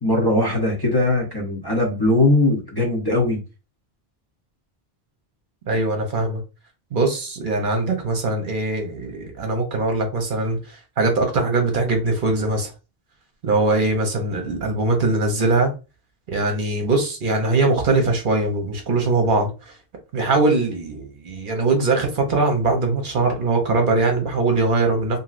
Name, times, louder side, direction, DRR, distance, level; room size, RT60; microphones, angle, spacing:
voice 1, 0.0-3.4, left 2 dB, 25° left, 0.6 m, -20 dB
voice 2, 5.7-6.4 6.9-12.7 13.4-15.7 16.3-19.7 20.1-25.2, right 3 dB, 60° right, 0.8 m, -21 dB
2.9 x 2.6 x 2.4 m
omnidirectional pair, 1.0 m